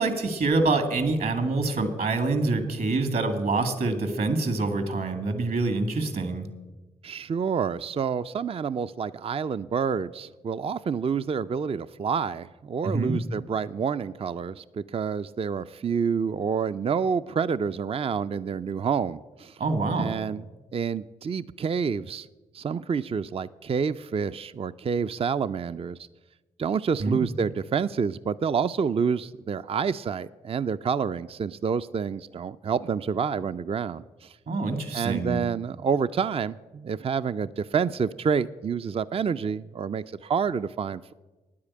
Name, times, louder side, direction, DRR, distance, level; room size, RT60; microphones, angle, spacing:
voice 1, 0.0-6.5 12.8-13.2 19.6-20.2 27.0-27.2 34.5-35.4, right 3 dB, 65° right, 8 dB, 2.0 m, -26 dB
voice 2, 7.0-19.6 20.0-20.4 20.7-22.3 22.5-26.0 26.6-34.4 34.9-41.1, right 6 dB, 35° right, 14 dB, 0.4 m, -28 dB
9.7 x 8.6 x 8.5 m, 1.2 s
supercardioid pair, 45°, 16 cm